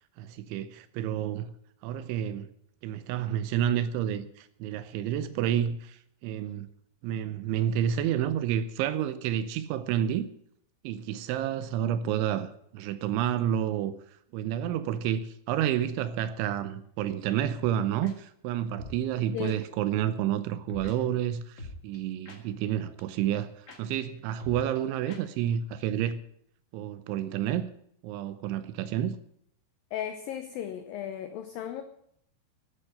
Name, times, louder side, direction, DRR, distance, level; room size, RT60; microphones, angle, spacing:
voice 1, 0.2-1.5 1.8-2.5 2.8-6.7 7.0-10.3 10.8-13.9 14.3-26.2 26.7-27.7 28.0-29.2, right 10 dB, 85° right, 3.1 m, -30 dB
sound 1, 18.0-18.1 18.7-19.0 19.4-19.5 20.7-20.9 21.6-22.7 23.0-23.1 23.3-23.4 23.7-23.8 24.0-24.1 24.4-24.8 25.1-25.2 25.5-25.6 25.8-25.9, left 1 dB, 35° left, 1.2 m, -43 dB
voice 2, 29.9-31.8, left 10 dB, 85° left, 2.0 m, -35 dB
13.5 x 9.4 x 8.7 m
omnidirectional pair, 5.4 m